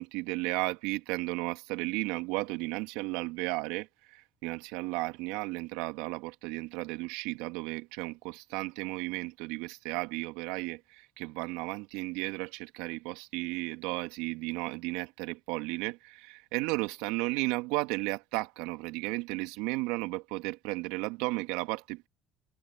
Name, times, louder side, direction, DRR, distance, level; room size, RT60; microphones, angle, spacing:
voice 1, 0.0-22.1, right 23 dB, 75° right, 2.1 m, -34 dB
hypercardioid pair, 65°, 0 cm